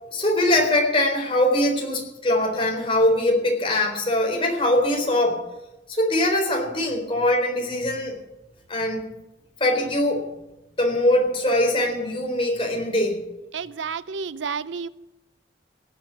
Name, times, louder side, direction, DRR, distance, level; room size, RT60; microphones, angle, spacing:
voice 1, 0.1-5.4 5.9-8.1 8.7-9.1 9.6-10.3 10.8-13.2, left 1 dB, 30° left, 1 dB, 4.1 m, -22 dB
voice 2, 13.5-14.9, right 5 dB, 85° right, 17 dB, 0.5 m, -30 dB
18.0 x 7.6 x 9.4 m, 0.96 s
head